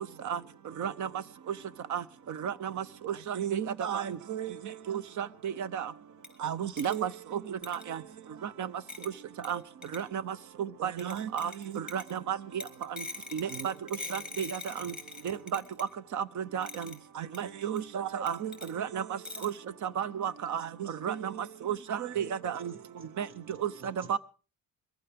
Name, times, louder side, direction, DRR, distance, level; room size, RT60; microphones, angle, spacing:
voice 1, 0.8-1.1 1.9-2.0 2.4-2.7 3.0-4.5 4.9-5.9 6.4-7.1 7.5-8.0 8.6-8.7 9.5-9.6 9.9-12.4 13.3-13.7 14.1-14.5 14.8-14.9 15.2-15.6 16.1-16.9 17.2-19.0 19.4-19.5 20.0-21.3 21.6-22.7 23.2-23.3 23.6-23.7 24.1-24.2, right 8 dB, 50° right, 18 dB, 0.7 m, -33 dB
voice 2, 5.0-5.5 6.1-7.2 8.0-8.4 9.7-9.8 17.5-17.7 19.7-20.2 23.2-23.3 24.0-24.1, equal, 90° right, 3 dB, 5.7 m, -69 dB
sound 1, 6.2-6.3 6.8-7.0 7.6-7.9 8.9-9.1 9.4-9.5 9.8-10.0 11.0-12.2 12.6-15.9 16.6-17.0 17.3-17.4 17.8-17.9 18.3-18.7 19.2-19.6, left 3 dB, ahead, 2.0 m, -42 dB
voice 3, 22.7-24.2, right 2 dB, 35° right, 9 dB, 1.8 m, -56 dB
22.5 x 14.5 x 3.5 m, 0.36 s
cardioid pair, 145°, 37 cm